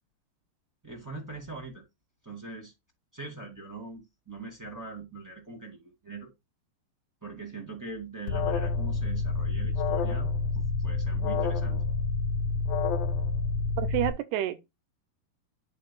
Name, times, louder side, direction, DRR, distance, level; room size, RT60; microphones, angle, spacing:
voice 1, 0.8-1.8 2.2-2.7 3.1-6.3 7.2-11.8, right 3 dB, 10° right, 1.3 m, -42 dB
Alarm, 8.3-14.1, left 4 dB, 75° left, 2.2 m, -28 dB
voice 2, 13.8-14.6, right 13 dB, 85° right, 2.7 m, -29 dB
11.5 x 3.9 x 2.3 m
omnidirectional pair, 4.6 m